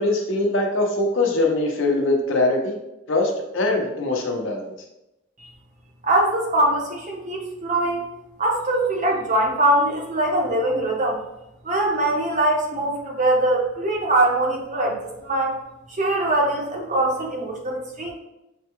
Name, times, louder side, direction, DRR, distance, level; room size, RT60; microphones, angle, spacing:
voice 1, 0.0-2.8 3.1-4.7, left 2 dB, 85° left, 0 dB, 0.9 m, -22 dB
voice 2, 6.0-8.1 8.4-11.2 11.6-15.6 15.9-18.1, right 1 dB, 40° right, -1 dB, 0.9 m, -22 dB
6.0 x 2.3 x 3.0 m, 0.91 s
head